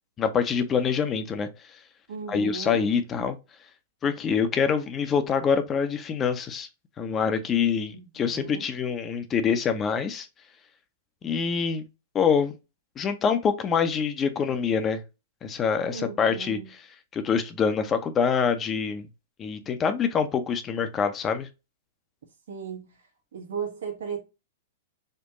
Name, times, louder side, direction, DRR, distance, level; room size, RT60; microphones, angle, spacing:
voice 1, 0.2-1.5 2.3-3.4 4.0-6.7 7.0-10.3 11.2-11.8 12.1-12.6 13.0-15.0 15.4-16.9 17.1-19.1 19.4-21.5, left 6 dB, 25° left, 0.7 m, -25 dB
voice 2, 2.1-2.9 7.9-8.7 15.9-16.7 22.5-22.9 23.3-24.2, right 6 dB, 65° right, 1.3 m, -36 dB
4.4 x 2.2 x 2.9 m
hypercardioid pair, 110°, 0 cm